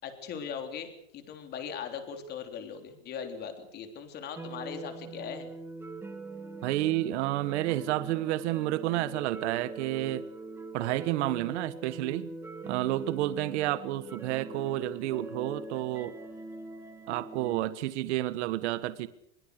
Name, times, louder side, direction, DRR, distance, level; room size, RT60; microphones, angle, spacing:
voice 1, 0.0-5.5, left 7 dB, 25° left, 6 dB, 3.5 m, -39 dB
sound 1, 4.3-17.6, right 3 dB, 5° right, 1.8 m, -43 dB
voice 2, 6.6-10.3 10.7-12.3 12.6-16.2 17.1-19.1, right 15 dB, 65° right, 14 dB, 1.4 m, -30 dB
24.0 x 23.0 x 6.6 m, 0.71 s
supercardioid pair, 180°, 37 cm